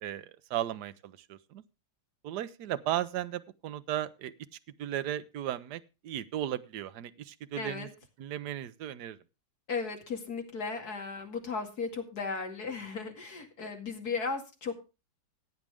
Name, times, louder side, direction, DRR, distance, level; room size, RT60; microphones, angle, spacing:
voice 1, 0.0-1.6 2.2-4.3 4.8-7.9 8.2-9.2, right 12 dB, 65° right, 12 dB, 1.3 m, -35 dB
voice 2, 7.6-7.9 9.7-14.7, left 4 dB, 50° left, 3 dB, 2.8 m, -36 dB
16.0 x 8.9 x 3.5 m, 0.29 s
omnidirectional pair, 2.1 m